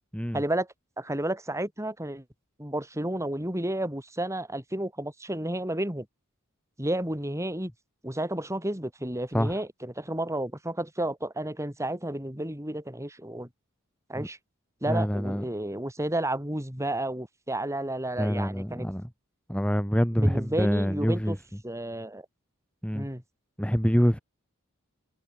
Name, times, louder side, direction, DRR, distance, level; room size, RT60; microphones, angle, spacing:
voice 1, 0.3-0.7 1.0-2.2 2.6-6.1 6.8-7.7 8.0-13.5 14.1-14.4 14.8-18.9 20.1-21.4 21.6-22.3 22.9-23.2, right 1 dB, 15° right, 5.5 m, -31 dB
voice 2, 14.9-15.4 18.2-19.1 19.5-21.4 22.8-23.1 23.6-24.2, equal, 5° left, 4.2 m, -26 dB
head